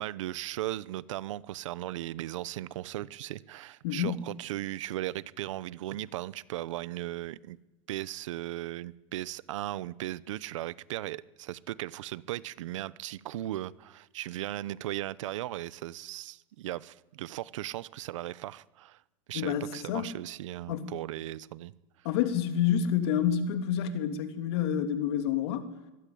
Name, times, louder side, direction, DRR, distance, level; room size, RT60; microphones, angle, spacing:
voice 1, 0.0-7.6 7.9-19.0 19.3-21.7, right 14 dB, 60° right, 0.9 m, -37 dB
voice 2, 3.8-4.2 19.3-20.1 20.7-20.9 22.0-25.7, left 9 dB, 50° left, 3.0 m, -28 dB
24.0 x 21.5 x 8.6 m
supercardioid pair, 170°, 18 cm